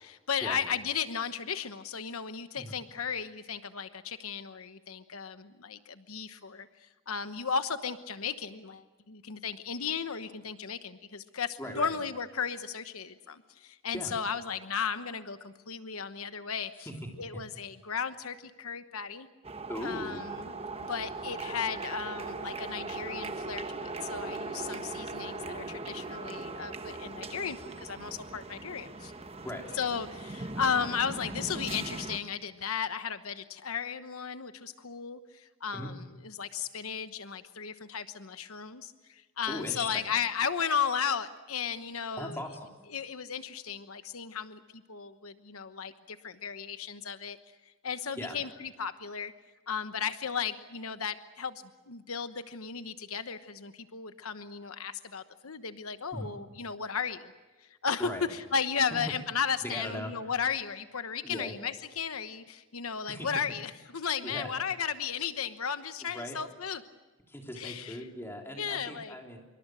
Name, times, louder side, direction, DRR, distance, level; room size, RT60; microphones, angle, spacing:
voice 1, 0.0-16.7 17.2-19.3 19.8-20.5 20.8-29.1 29.8-35.9 36.4-42.4 42.9-47.4 47.8-49.3 49.7-57.3 57.8-66.8 67.5-68.0 68.6-69.1, left 6 dB, 90° left, 10 dB, 1.1 m, -35 dB
voice 2, 11.6-11.9 13.9-14.2 16.7-17.4 19.7-20.2 29.4-29.6 35.7-35.9 39.5-40.0 42.2-42.7 48.2-48.4 56.1-56.3 58.0-58.2 59.6-60.1 61.2-61.5 63.1-63.3 64.2-64.5 66.0-66.4 67.3-69.4, left 1 dB, 10° left, 1 dB, 3.5 m, -39 dB
sound 1, 19.4-32.2, right 3 dB, 30° right, 1.1 m, -39 dB
26.0 x 23.5 x 6.3 m, 1.2 s
head